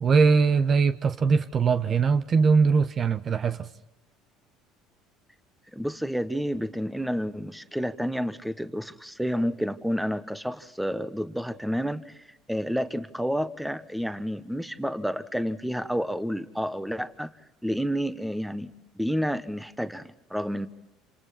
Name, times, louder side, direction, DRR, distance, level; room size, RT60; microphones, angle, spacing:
voice 1, 0.0-3.7, right 5 dB, 40° right, 11 dB, 1.1 m, -21 dB
voice 2, 5.7-17.3 17.6-20.7, equal, ahead, 11 dB, 1.4 m, -30 dB
28.5 x 27.5 x 4.2 m, 0.98 s
supercardioid pair, 85°, 0 cm